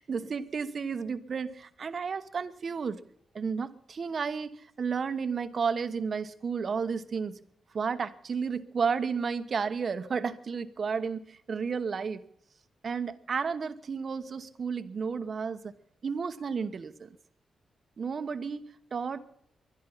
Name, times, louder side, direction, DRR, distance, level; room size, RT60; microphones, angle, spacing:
voice 1, 0.0-3.0 3.3-7.3 7.7-12.2 12.8-15.7 16.0-17.1 18.0-19.2, right 5 dB, 55° right, 10 dB, 1.1 m, -32 dB
23.5 x 10.5 x 5.7 m, 0.70 s
cardioid pair, 85°, 0 cm